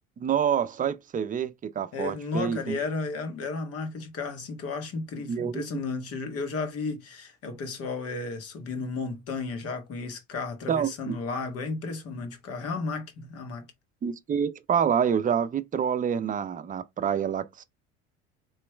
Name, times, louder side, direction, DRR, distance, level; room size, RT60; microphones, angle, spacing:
voice 1, 0.2-2.8 5.3-5.6 10.7-11.1 14.0-17.6, right 8 dB, 30° right, 0.6 m, -27 dB
voice 2, 1.9-13.7, left 4 dB, 55° left, 1.6 m, -33 dB
3.2 x 3.0 x 4.4 m
supercardioid pair, 100°, 29 cm